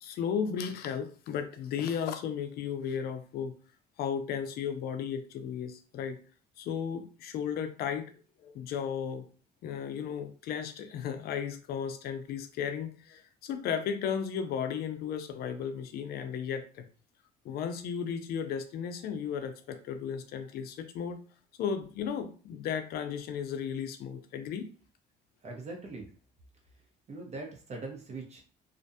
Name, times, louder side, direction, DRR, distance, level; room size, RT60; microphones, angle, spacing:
voice 1, 0.0-3.6 4.0-6.2 6.6-8.1 8.4-9.3 9.6-16.8 17.4-21.2 21.6-24.7, left 7 dB, 65° left, 8 dB, 0.4 m, -35 dB
voice 2, 25.4-26.1 27.1-28.4, right 3 dB, 40° right, 1 dB, 0.9 m, -41 dB
2.4 x 2.2 x 2.6 m, 0.39 s
cardioid pair, 110°, 17 cm